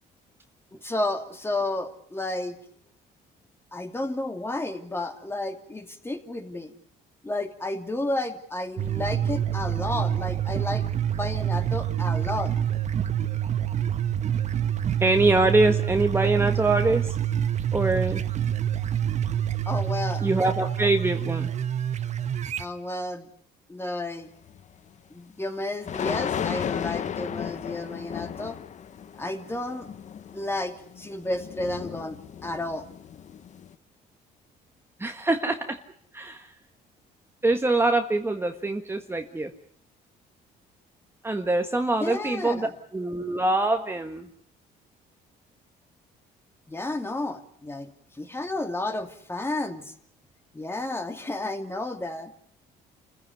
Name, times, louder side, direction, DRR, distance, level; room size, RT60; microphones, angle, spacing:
voice 1, 0.7-2.6 3.7-6.7 7.2-10.9 11.1-12.5 19.7-20.3 22.6-23.3 23.7-24.3 25.1-28.6 29.0-29.9 30.3-32.9 42.0-42.7 46.7-49.9 50.5-52.3, left 2 dB, 15° left, 6 dB, 2.6 m, -32 dB
sound 1, 8.8-22.6, right 10 dB, 45° right, 1.3 m, -27 dB
voice 2, 15.0-17.1 17.7-18.2 20.2-21.5 35.0-35.8 36.1-36.5 37.4-39.5 41.2-42.7 42.9-44.3, right 2 dB, 15° right, 5 dB, 1.6 m, -24 dB
sound 2, 24.5-24.6 25.8-33.7, left 8 dB, 45° left, 1.1 m, -34 dB
28.5 x 15.5 x 9.5 m, 0.62 s
cardioid pair, 110°, 17 cm